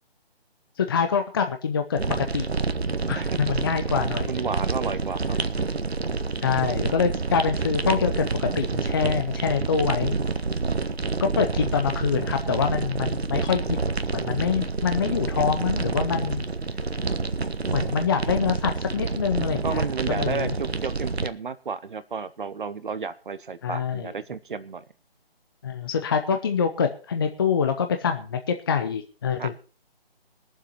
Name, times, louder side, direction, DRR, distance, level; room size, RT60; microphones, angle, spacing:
voice 1, 0.8-2.5 3.1-4.4 6.4-10.2 11.2-13.8 14.1-16.4 17.7-20.5 23.6-24.1 25.6-29.5, left 6 dB, 25° left, 6 dB, 0.7 m, -25 dB
sound 1, 2.0-21.3, right 4 dB, 80° right, 1.3 m, -28 dB
voice 2, 4.3-5.4 19.6-24.8 29.4-29.5, right 5 dB, 55° right, 14 dB, 1.1 m, -32 dB
20.5 x 7.4 x 5.5 m, 0.36 s
figure-of-eight pair, 150°, 31 cm